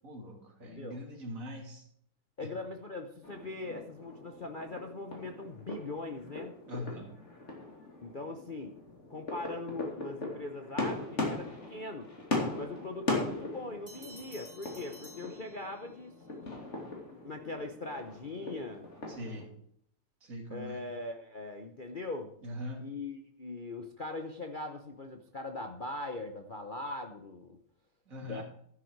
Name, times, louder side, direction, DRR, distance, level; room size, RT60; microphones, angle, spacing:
voice 1, 0.0-1.9 2.4-2.5 6.7-7.1 19.1-19.5 20.2-20.8 22.4-22.9 28.1-28.4, left 1 dB, 35° right, 1 dB, 3.0 m, -42 dB
voice 2, 0.6-1.0 2.4-6.6 8.0-8.7 9.1-12.1 12.5-16.1 17.2-18.9 20.5-22.3 22.8-27.6 28.2-28.4, left 2 dB, 70° left, 4 dB, 0.4 m, -40 dB
sound 1, 3.2-19.4, left 2 dB, 30° left, 3.1 m, -39 dB
sound 2, 13.9-16.1, left 1 dB, 15° right, 4.4 m, -52 dB
12.0 x 10.0 x 4.7 m, 0.66 s
omnidirectional pair, 2.4 m